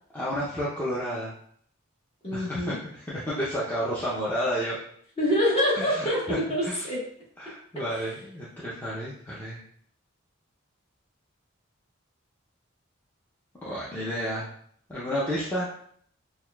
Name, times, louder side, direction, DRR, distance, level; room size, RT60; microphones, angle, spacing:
voice 1, 0.1-1.3 2.3-4.8 5.7-6.9 7.4-9.6 13.6-14.5 14.9-15.7, equal, 10° left, -8 dB, 0.6 m, -31 dB
voice 2, 2.2-2.7 5.2-7.0 8.0-8.1, equal, 30° left, -5 dB, 1.3 m, -26 dB
6.2 x 2.3 x 2.3 m, 0.63 s
head